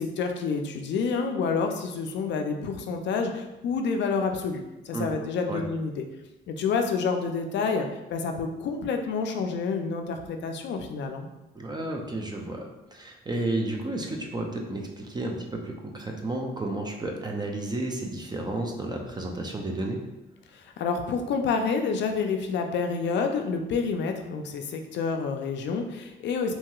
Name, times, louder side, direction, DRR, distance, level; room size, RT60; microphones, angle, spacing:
voice 1, 0.0-6.0 6.5-11.3 20.5-26.5, left 5 dB, 65° left, 5 dB, 0.4 m, -28 dB
voice 2, 11.6-20.0, right 2 dB, 20° right, 1 dB, 0.4 m, -32 dB
2.8 x 2.8 x 2.3 m, 1.0 s
cardioid pair, 90°, 20 cm